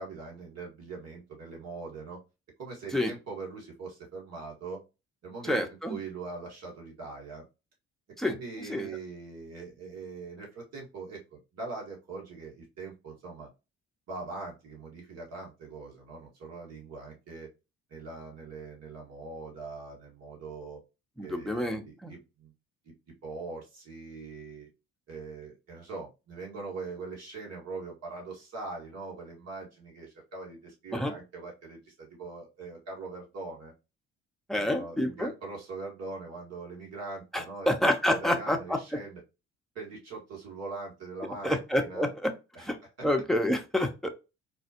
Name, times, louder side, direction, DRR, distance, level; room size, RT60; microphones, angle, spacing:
voice 1, 0.0-2.2 2.6-4.8 5.2-5.6 5.9-7.4 8.2-13.5 14.1-17.5 17.9-20.8 21.2-22.5 23.2-24.7 25.1-33.7 34.5-37.7 38.1-39.2 39.8-42.1 42.5-43.1, right 3 dB, 55° right, -1 dB, 1.9 m, -42 dB
voice 2, 5.5-6.0 8.2-8.3 8.7-8.9 21.2-22.1 30.9-31.1 34.5-35.3 37.3-38.8 41.4-42.3 42.6-42.8 43.0-44.1, left 1 dB, ahead, 5 dB, 0.9 m, -28 dB
4.3 x 2.2 x 2.9 m, 0.27 s
hypercardioid pair, 55°, 30 cm